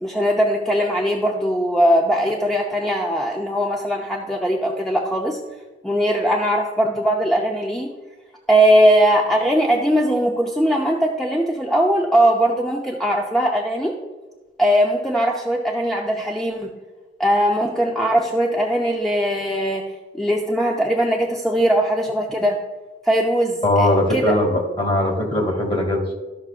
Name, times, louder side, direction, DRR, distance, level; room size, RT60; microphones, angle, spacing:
voice 1, 0.0-5.4 5.8-7.9 8.5-13.9 14.6-16.7 17.2-19.8 20.1-22.6 23.0-24.4, equal, ahead, -1 dB, 0.6 m, -20 dB
voice 2, 23.6-26.1, left 1 dB, 30° left, 0 dB, 2.1 m, -20 dB
13.5 x 5.9 x 2.5 m, 1.2 s
head